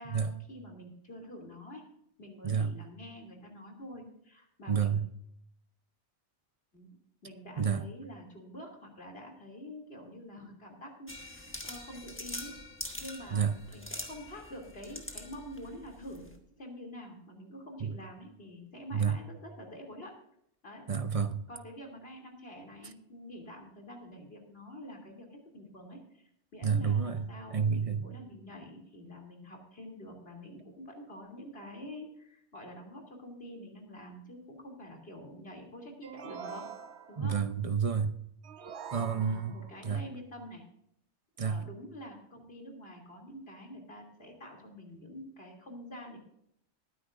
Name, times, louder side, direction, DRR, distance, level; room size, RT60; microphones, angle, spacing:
voice 1, 0.0-1.8 2.2-5.0 6.7-6.9 7.2-12.5 13.0-20.2 20.6-20.9 21.5-36.6 37.1-37.4 38.6-40.6 41.4-46.2, equal, 60° left, 3.1 m, -47 dB
voice 2, 4.7-5.1 7.6-7.8 13.3-13.5 17.8-17.9 18.9-19.2 20.9-21.4 26.6-28.0 37.2-38.1 38.9-39.5 39.8-40.0 41.4-41.6, right 6 dB, 35° right, 0.7 m, -29 dB
sound 1, 11.1-16.4, left 1 dB, 10° left, 1.3 m, -44 dB
sound 2, 36.0-37.4 38.4-39.8, right 6 dB, 70° right, 1.2 m, -45 dB
20.5 x 9.9 x 2.5 m
omnidirectional pair, 1.2 m